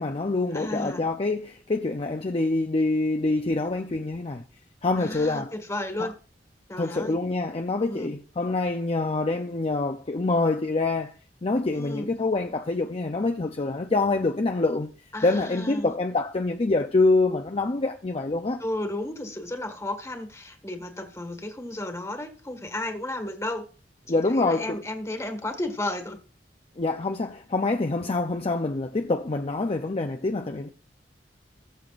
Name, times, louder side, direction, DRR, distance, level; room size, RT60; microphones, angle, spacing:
voice 1, 0.0-4.4 4.8-5.5 6.0-6.1 6.8-11.1 11.4-14.9 15.2-18.6 24.1-24.8 26.8-30.7, left 3 dB, 35° left, 0.6 m, -26 dB
voice 2, 0.5-1.1 5.0-6.1 6.7-7.2 7.9-8.1 11.7-12.1 15.1-15.9 18.6-23.6 24.1-26.2, left 1 dB, 15° left, 1.7 m, -33 dB
20.5 x 6.9 x 2.5 m
head